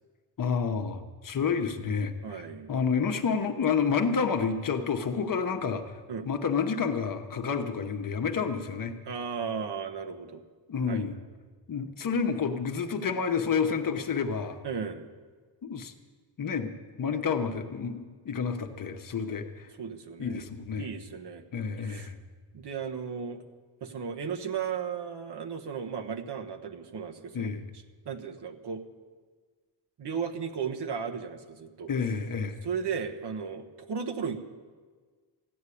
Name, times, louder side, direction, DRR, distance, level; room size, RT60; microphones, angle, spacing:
voice 1, 0.4-5.8 6.2-8.9 10.7-11.2 11.7-14.6 15.6-15.9 16.4-16.7 17.0-19.7 20.2-20.9 21.5-22.2 27.3-27.7 31.9-32.6, left 6 dB, 45° left, 5 dB, 1.0 m, -29 dB
voice 2, 2.2-2.7 6.1-6.3 9.0-10.4 10.9-11.1 14.6-15.0 19.8-20.4 20.8-21.4 21.8-22.1 22.5-23.4 23.8-27.5 28.0-28.8 30.0-31.9 32.6-34.4, right 6 dB, 60° right, 5 dB, 1.2 m, -35 dB
15.0 x 8.1 x 9.9 m, 1.5 s
wide cardioid pair, 160°, 45 cm